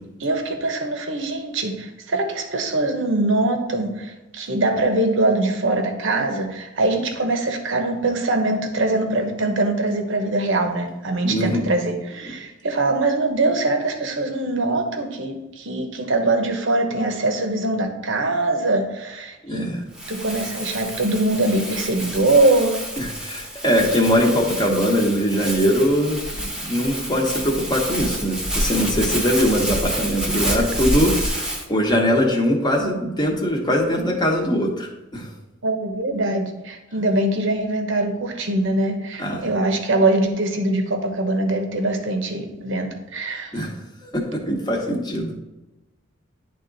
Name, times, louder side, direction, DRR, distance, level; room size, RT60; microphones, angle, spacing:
voice 1, 0.2-19.7 20.1-22.8 35.6-43.6, right 2 dB, 60° right, 5 dB, 1.0 m, -22 dB
voice 2, 11.2-11.6 19.4-19.8 23.0-35.3 39.2-39.5 43.5-43.7 44.0-45.4, equal, 20° left, 0 dB, 1.1 m, -21 dB
Crumpling crinkling, 19.9-31.6, equal, 5° right, 0.9 m, -28 dB
10.5 x 3.7 x 4.0 m, 1.0 s
head